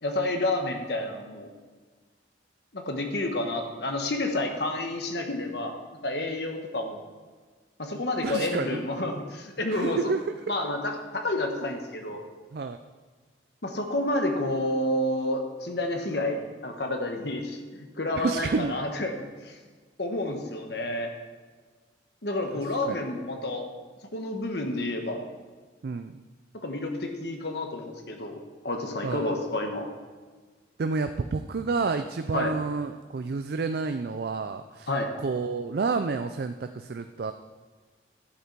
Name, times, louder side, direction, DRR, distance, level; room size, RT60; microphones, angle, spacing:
voice 1, 0.0-1.5 2.7-5.8 6.0-7.1 7.8-10.1 10.5-12.2 13.6-17.6 18.0-19.6 20.0-21.1 22.2-23.6 24.1-25.2 26.6-29.9 32.3-32.5 34.9-35.1, left 1 dB, 60° left, 4 dB, 1.2 m, -30 dB
voice 2, 8.2-8.8 9.7-10.4 12.5-12.8 18.2-18.7 22.6-23.0 25.8-26.2 29.0-29.3 30.8-34.9 35.2-37.3, right 4 dB, 55° right, 8 dB, 0.4 m, -30 dB
11.5 x 8.3 x 4.6 m, 1.4 s
head